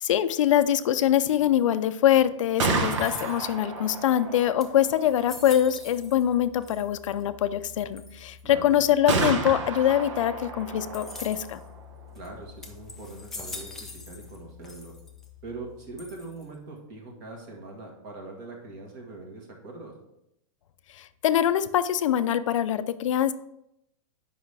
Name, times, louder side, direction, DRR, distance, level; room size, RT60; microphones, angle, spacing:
voice 1, 0.0-11.6 20.9-23.3, left 11 dB, 65° left, 13 dB, 0.5 m, -24 dB
Gunshot gunfire, 2.3-16.2, right 3 dB, 60° right, 1.2 m, -35 dB
sound 1, 2.9-3.7 4.2-4.3 4.6-6.3 6.6-7.2 8.0-8.4 10.9-11.6 12.1-12.3 12.6-14.4 14.6-15.3 16.0-16.5, left 3 dB, ahead, 0.3 m, -43 dB
voice 2, 8.4-8.8 12.1-13.7 14.1-14.9 15.4-19.9, right 3 dB, 35° right, 0 dB, 1.5 m, -42 dB
8.1 x 5.5 x 3.3 m, 0.80 s
supercardioid pair, 170°, 17 cm